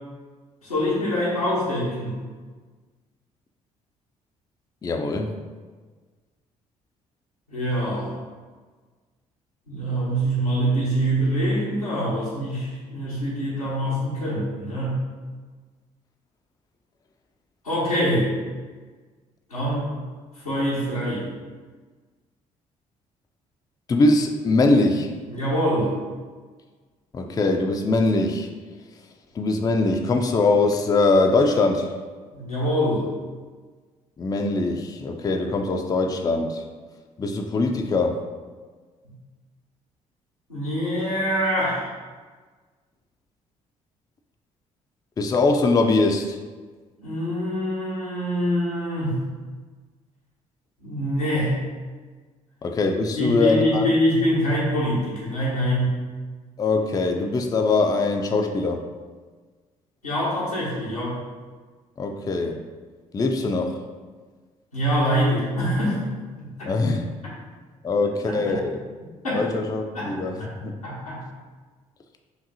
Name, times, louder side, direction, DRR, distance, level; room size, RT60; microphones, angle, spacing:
voice 1, 0.6-2.2 7.5-8.2 9.7-15.0 17.6-18.4 19.5-19.9 20.4-21.3 25.3-25.9 32.3-33.0 40.5-41.9 47.0-49.3 50.8-51.6 53.1-56.0 60.0-61.2 64.7-66.0 66.4-66.7 68.3-68.6 69.2-69.4 69.9-70.1 70.4-70.5 70.8-71.2, equal, 90° left, -8 dB, 0.9 m, -24 dB
voice 2, 4.8-5.3 23.9-25.1 27.1-28.5 29.4-31.9 34.2-36.6 37.2-38.2 45.2-46.4 52.6-53.9 56.6-58.8 62.0-62.6 63.1-63.8 66.7-67.1 67.8-68.8 69.3-70.7, left 3 dB, 20° left, 4 dB, 0.4 m, -22 dB
4.9 x 2.6 x 2.6 m, 1.4 s
figure-of-eight pair, 45°, 18 cm